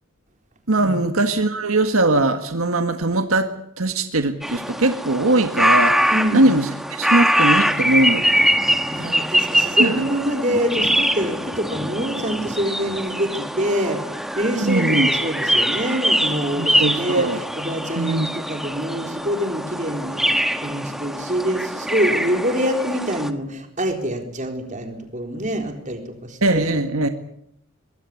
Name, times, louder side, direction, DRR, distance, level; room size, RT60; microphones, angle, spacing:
voice 1, 0.7-3.5 3.8-8.5 9.8-10.0 14.6-15.1 16.6-17.4 18.0-18.3 26.4-27.1, right 2 dB, 75° right, 7 dB, 1.7 m, -20 dB
sound 1, 4.4-23.3, equal, ahead, 1.4 m, -23 dB
voice 2, 6.1-6.5 8.9-14.0 14.3-17.3 17.6-26.8, equal, 35° right, 4 dB, 4.0 m, -25 dB
23.5 x 21.0 x 8.5 m, 0.74 s
head